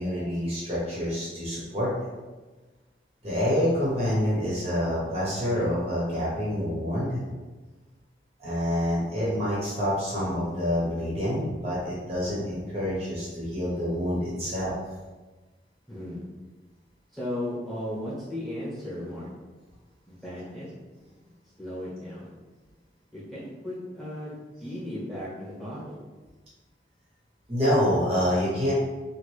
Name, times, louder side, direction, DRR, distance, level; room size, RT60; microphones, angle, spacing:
voice 1, 0.0-2.1 3.2-7.2 8.4-14.7 27.5-28.7, equal, 35° right, -7 dB, 0.8 m, -27 dB
voice 2, 15.9-16.2 17.1-19.3 20.1-20.7 21.6-22.3 23.1-26.0, left 1 dB, ahead, -10 dB, 1.0 m, -36 dB
2.9 x 2.5 x 3.1 m, 1.2 s
head